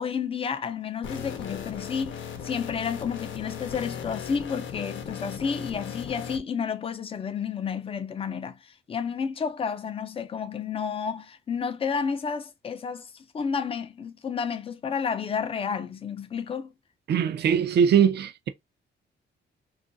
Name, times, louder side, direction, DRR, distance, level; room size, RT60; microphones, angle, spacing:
voice 1, 0.0-16.7, left 6 dB, 30° left, 0.4 m, -31 dB
sound 1, 1.0-6.4, left 7 dB, 80° left, 0.7 m, -37 dB
voice 2, 17.1-18.5, right 7 dB, 60° right, 0.5 m, -21 dB
2.9 x 2.4 x 2.5 m
wide cardioid pair, 160°, 19 cm